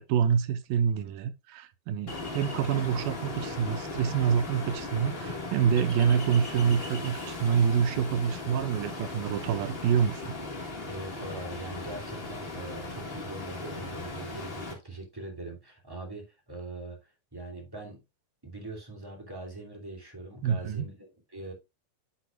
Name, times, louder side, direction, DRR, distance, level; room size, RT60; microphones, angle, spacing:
voice 1, 0.0-10.2 20.4-20.9, right 8 dB, 80° right, 2.4 m, -27 dB
Ocean, 2.1-14.7, left 3 dB, 50° left, 0.7 m, -38 dB
voice 2, 10.9-18.0 18.4-21.5, right 2 dB, 10° right, 1.8 m, -42 dB
10.0 x 6.2 x 2.4 m
omnidirectional pair, 4.2 m